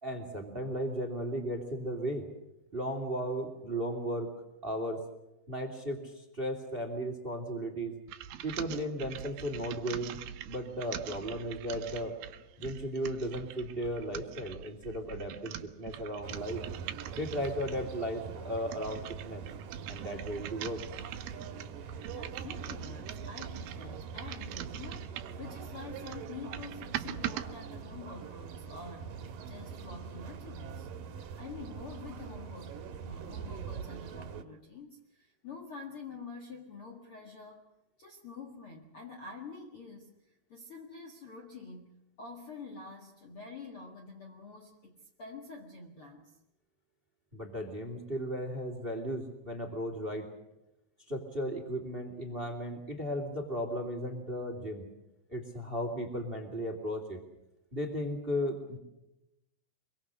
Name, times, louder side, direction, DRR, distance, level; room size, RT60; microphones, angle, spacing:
voice 1, 0.0-2.3 2.7-4.3 4.6-5.0 5.5-7.9 8.4-10.2 10.4-12.1 12.6-16.6 17.1-19.4 19.9-20.8 47.3-50.3 51.1-54.8 55.3-57.2 57.7-58.8, equal, 15° right, 6 dB, 2.5 m, -35 dB
sound 1, 8.1-17.9 18.5-25.5 25.9-27.5, right 10 dB, 75° right, 3.0 m, -43 dB
sound 2, 16.2-34.4, right 6 dB, 60° right, 3.0 m, -43 dB
voice 2, 22.1-30.9 31.4-37.7 38.0-46.4, left 4 dB, 45° left, 1 dB, 2.1 m, -47 dB
25.0 x 23.5 x 6.4 m, 0.92 s
omnidirectional pair, 4.7 m